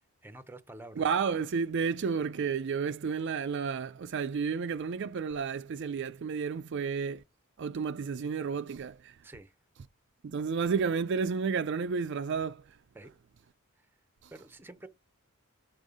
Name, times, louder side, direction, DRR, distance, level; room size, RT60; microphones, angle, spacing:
voice 1, 0.2-1.0 9.2-9.5 12.9-13.1 13.8-13.9 14.3-14.9, right 2 dB, 10° right, 0.7 m, -48 dB
voice 2, 1.0-7.2 7.6-9.2 10.2-12.8 14.2-14.3, right 5 dB, 55° right, 0.4 m, -31 dB
6.2 x 5.4 x 4.9 m
head